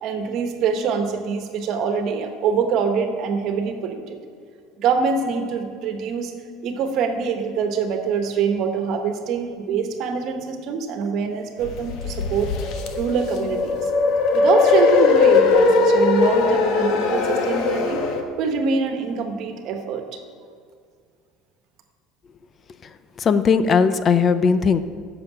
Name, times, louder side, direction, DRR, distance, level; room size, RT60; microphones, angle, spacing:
voice 1, 0.0-4.2 4.8-6.3 6.6-12.5 13.0-13.9 14.3-18.0 18.4-20.2, right 6 dB, 60° right, 6 dB, 1.3 m, -24 dB
sound 1, 11.6-18.2, left 4 dB, 65° left, 1.2 m, -19 dB
voice 2, 23.2-24.8, left 5 dB, 35° left, 12 dB, 0.5 m, -18 dB
8.0 x 6.9 x 8.3 m, 2.1 s
supercardioid pair, 105°, 0 cm